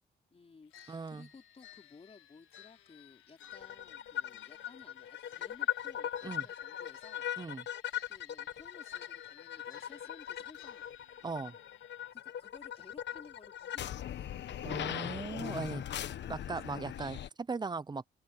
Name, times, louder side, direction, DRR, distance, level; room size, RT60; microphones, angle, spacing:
voice 1, 0.3-7.3 8.1-10.9 12.1-14.2 15.4-16.6, left 4 dB, 30° left, 4.3 m, -57 dB
sound 1, 0.7-12.1, left 11 dB, 85° left, 1.7 m, -58 dB
voice 2, 0.9-1.3 6.2-6.5 7.4-7.6 11.2-11.6 14.6-15.8 16.3-18.1, right 4 dB, 20° right, 0.7 m, -38 dB
sound 2, 3.5-17.3, left 11 dB, 65° left, 1.1 m, -40 dB
cardioid pair, 90°, 20 cm